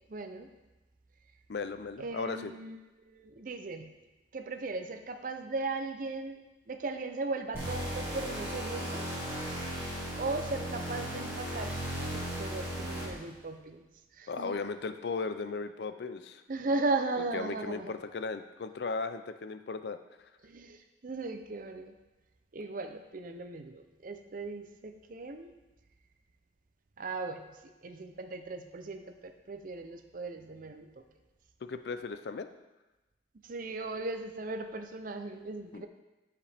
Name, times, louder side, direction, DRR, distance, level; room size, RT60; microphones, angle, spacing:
voice 1, 0.1-0.5 2.0-2.8 3.1-3.9 4.3-6.4 6.7-9.2 10.1-13.8 14.1-14.5 16.5-18.0 20.4-21.9 22.5-25.5 27.0-31.0 33.4-35.9, right 3 dB, 50° right, 7 dB, 0.5 m, -37 dB
voice 2, 1.5-2.5 14.3-16.4 17.3-20.0 31.6-32.5 35.7-35.9, left 4 dB, 65° left, 9 dB, 0.4 m, -36 dB
sound 1, 7.5-13.3, right 1 dB, 15° right, 2.4 m, -36 dB
9.7 x 5.0 x 3.4 m, 1.1 s
head